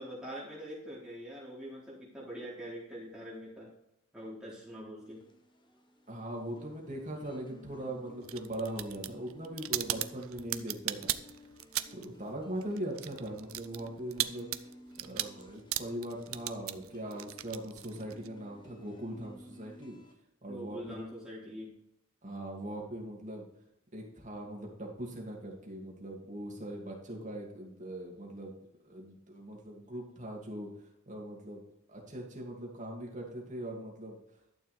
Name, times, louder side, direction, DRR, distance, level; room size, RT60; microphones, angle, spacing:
voice 1, 0.0-3.7 4.1-5.2 20.5-21.7, equal, 5° right, -7 dB, 4.1 m, -44 dB
sound 1, 5.0-20.1, equal, 25° left, 1.0 m, -55 dB
voice 2, 6.1-11.1 11.9-14.5 15.0-20.0 20.4-21.0 22.2-23.5 23.9-28.5 28.9-30.7 31.1-31.6 31.9-34.2, right 1 dB, 35° right, -1 dB, 2.5 m, -40 dB
sound 2, 8.2-12.2 12.4-18.3, right 14 dB, 85° right, 0.6 m, -37 dB
11.5 x 7.0 x 3.5 m, 0.82 s
head